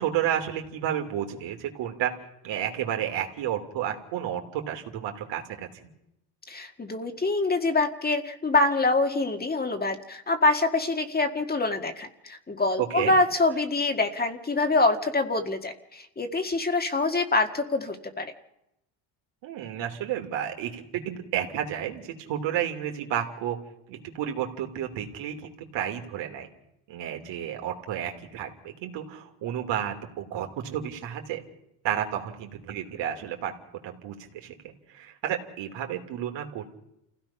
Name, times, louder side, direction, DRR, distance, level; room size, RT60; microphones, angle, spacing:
voice 1, 0.0-2.1 2.4-5.9 12.8-13.1 19.4-23.6 23.9-26.5 26.9-31.4 31.8-33.5 33.8-36.7, right 10 dB, 75° right, 3 dB, 3.1 m, -31 dB
voice 2, 6.5-18.3, left 3 dB, 20° left, 6 dB, 1.9 m, -25 dB
28.0 x 16.5 x 5.8 m, 0.82 s
cardioid pair, 115°, 44 cm